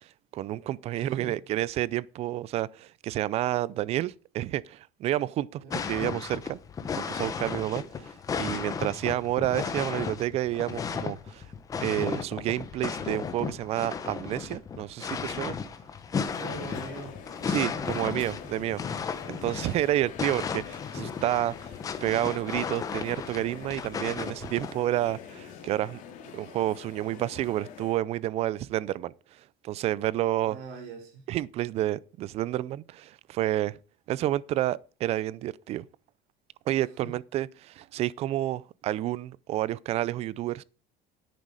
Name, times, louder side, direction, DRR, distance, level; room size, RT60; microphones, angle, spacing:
voice 1, 0.0-6.6 7.1-11.5 11.8-15.6 17.5-18.8 19.2-21.7 22.0-26.0 26.3-30.6 31.3-33.8 34.1-35.8 36.7-40.6, right 14 dB, 35° right, 0.4 m, -30 dB
voice 2, 0.9-1.3 5.6-5.7 16.4-17.2 17.5-18.4 26.3-26.4 30.4-31.2 37.0-37.1, right 4 dB, 80° right, 4.2 m, -42 dB
sound 1, 5.7-24.7, left 6 dB, 20° left, 0.9 m, -34 dB
sound 2, 16.2-27.9, left 7 dB, 45° left, 2.3 m, -45 dB
10.5 x 9.2 x 4.8 m
cardioid pair, 180°, 18 cm